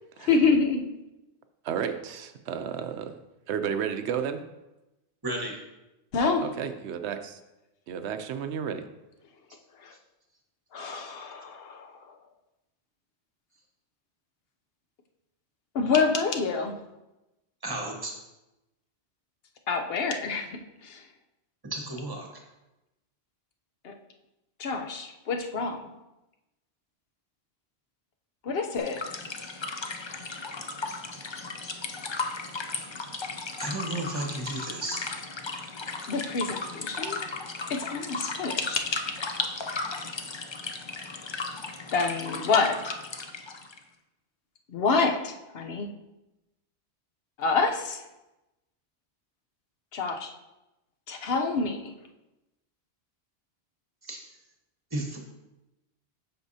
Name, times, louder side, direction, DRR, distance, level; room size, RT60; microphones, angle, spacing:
voice 1, 0.2-0.9 6.1-6.5 9.8-9.9 10.7-12.1 15.7-16.7 19.7-21.0 23.8-23.9 24.6-25.9 28.4-29.0 36.1-37.2 37.7-38.8 41.9-42.9 44.7-45.9 47.4-48.0 49.9-50.3 51.1-51.9, left 4 dB, 65° left, 5 dB, 0.9 m, -27 dB
voice 2, 1.6-3.2 3.5-4.4 6.6-7.4 7.9-8.8, right 7 dB, 85° right, 9 dB, 0.9 m, -32 dB
voice 3, 5.2-5.6 9.9-10.0 17.6-18.2 21.6-22.4 33.6-35.1 54.0-54.3 54.9-55.2, right 1 dB, 20° right, 1 dB, 1.1 m, -34 dB
sound 1, 28.8-43.8, left 3 dB, 40° left, 0.4 m, -36 dB
8.0 x 6.1 x 2.7 m, 0.98 s
omnidirectional pair, 1.1 m